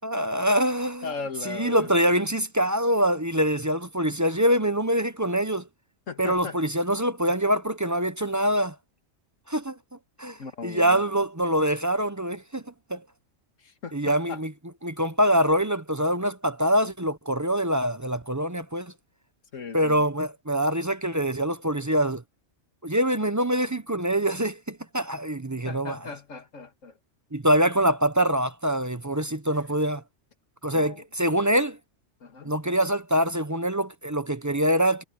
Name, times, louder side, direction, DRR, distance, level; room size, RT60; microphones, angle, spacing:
voice 1, 0.0-1.1 1.4-5.6 6.2-8.7 9.5-9.8 10.2-10.4 10.6-12.6 12.9-13.0 13.9-14.5 14.8-18.9 19.7-22.2 22.8-26.0 27.3-30.0 30.6-31.8 32.4-35.0, equal, 15° right, 0.7 m, -24 dB
voice 2, 1.0-1.9 6.1-6.6 10.4-11.0 13.6-14.4 19.5-20.0 25.6-27.0 30.7-31.0 32.2-32.5, left 5 dB, 80° left, 2.1 m, -37 dB
omnidirectional pair, 1.3 m